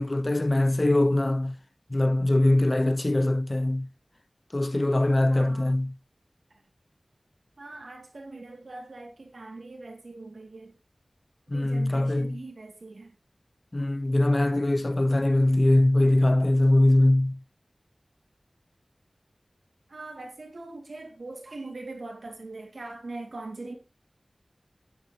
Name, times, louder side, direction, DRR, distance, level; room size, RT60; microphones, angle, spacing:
voice 1, 0.0-1.6 1.9-3.9 4.5-5.9 11.5-12.4 13.7-17.4, left 1 dB, 40° left, 0.6 m, -22 dB
voice 2, 5.3-5.8 7.6-10.7 11.5-13.2 19.9-23.7, right 2 dB, 80° right, 2.7 m, -41 dB
11.0 x 10.5 x 3.1 m
wide cardioid pair, 60°, 0 cm